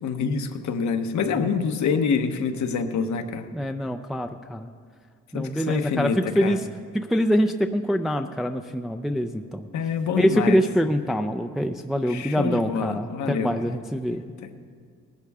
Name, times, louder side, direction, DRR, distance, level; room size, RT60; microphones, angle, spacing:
voice 1, 0.0-3.5 5.3-6.6 9.7-10.6 12.1-13.5 14.4-14.5, left 5 dB, 70° left, 7 dB, 1.0 m, -26 dB
voice 2, 3.5-4.7 5.3-6.7 6.9-9.7 10.2-14.2, equal, ahead, 5 dB, 0.4 m, -24 dB
18.5 x 11.5 x 3.6 m, 2.1 s
cardioid pair, 90°, 30 cm